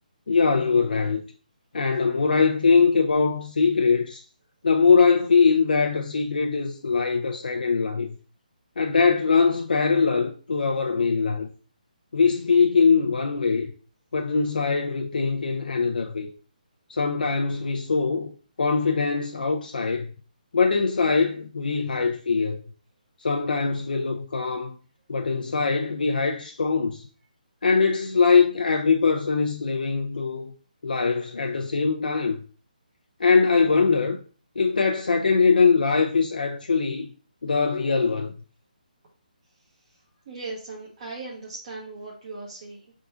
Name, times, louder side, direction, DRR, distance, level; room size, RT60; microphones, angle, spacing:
voice 1, 0.3-1.2 1.7-4.2 4.6-8.2 8.8-11.5 12.1-13.7 14.1-16.3 16.9-20.1 20.5-22.6 23.2-24.8 25.1-27.1 27.6-30.5 30.8-32.4 33.2-34.2 34.6-37.1 37.4-38.3, left 5 dB, 75° left, 0.5 m, -22 dB
voice 2, 40.3-42.9, right 3 dB, 45° right, 1.1 m, -38 dB
4.7 x 3.6 x 2.5 m
figure-of-eight pair, 150°, 5 cm